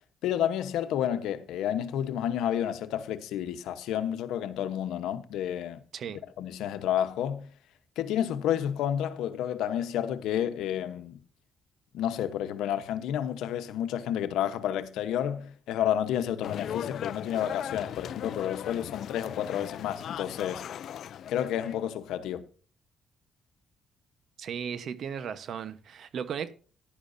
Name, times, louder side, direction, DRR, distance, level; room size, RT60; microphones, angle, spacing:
voice 1, 0.2-5.8 6.4-7.5 8.0-11.2 11.9-20.6 21.3-22.4, left 10 dB, 90° left, 1.0 m, -30 dB
sound 1, 16.4-21.8, left 9 dB, 65° left, 0.4 m, -38 dB
voice 2, 24.4-26.5, right 7 dB, 65° right, 1.1 m, -36 dB
14.5 x 11.0 x 2.7 m
cardioid pair, 90°, 0 cm